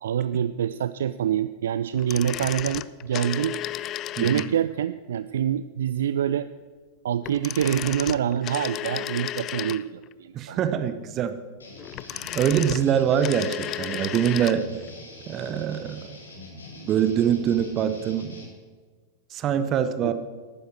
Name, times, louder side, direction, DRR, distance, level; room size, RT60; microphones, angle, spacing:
voice 1, 0.0-3.6 4.2-6.5 7.0-10.6 20.0-20.1, right 9 dB, 60° right, 14 dB, 0.3 m, -26 dB
sound 1, 1.9-4.8 7.2-10.1 11.8-14.6 14.9-15.0, left 13 dB, 35° left, 0.4 m, -33 dB
voice 2, 10.3-11.4 12.1-14.7 15.3-16.1 16.8-18.3 19.3-20.1, right 9 dB, 30° right, 11 dB, 0.8 m, -24 dB
sound 2, 11.6-18.5, left 2 dB, 75° left, 2.8 m, -44 dB
12.0 x 9.5 x 6.3 m, 1.4 s
figure-of-eight pair, 90°, 0 cm